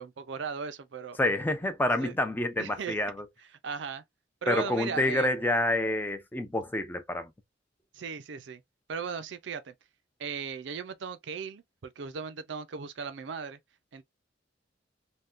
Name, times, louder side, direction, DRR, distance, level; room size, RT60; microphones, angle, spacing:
voice 1, 0.0-1.2 2.0-2.1 2.6-3.0 3.6-4.0 4.4-5.3 7.9-8.6 8.9-9.7 10.2-13.6 13.9-14.0, right 6 dB, 65° right, 0.5 m, -37 dB
voice 2, 1.2-3.3 4.5-7.3, left 1 dB, 10° left, 0.5 m, -28 dB
3.5 x 2.2 x 2.5 m
head